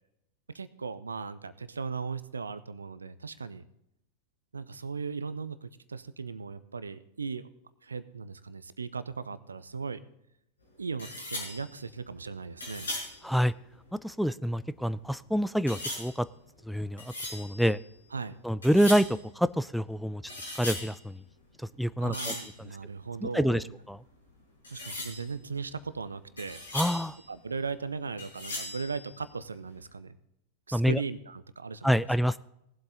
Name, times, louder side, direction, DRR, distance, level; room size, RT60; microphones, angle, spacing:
voice 1, 0.5-3.6 4.5-7.5 7.8-10.0 10.8-12.9 18.1-18.4 22.0-23.7 24.7-26.6 27.3-30.2 30.7-32.0, right 5 dB, 75° right, 16 dB, 0.7 m, -37 dB
sound 1, 10.6-10.7 11.0-14.1 14.5-15.2 15.7-18.3 18.6-19.3 19.7-21.3 21.6-23.6 23.9-24.0 24.2-24.4 24.6-27.9 28.2-29.7, left 2 dB, 75° left, 5.6 m, -39 dB
voice 2, 14.0-16.3 16.7-17.8 18.4-19.1 19.4-20.2 20.6-21.2 21.8-22.3 23.3-24.0 26.7-27.2 30.7-31.0 31.8-32.4, equal, ahead, 15 dB, 0.3 m, -27 dB
18.5 x 7.8 x 3.8 m, 0.80 s
figure-of-eight pair, 90°, 0 cm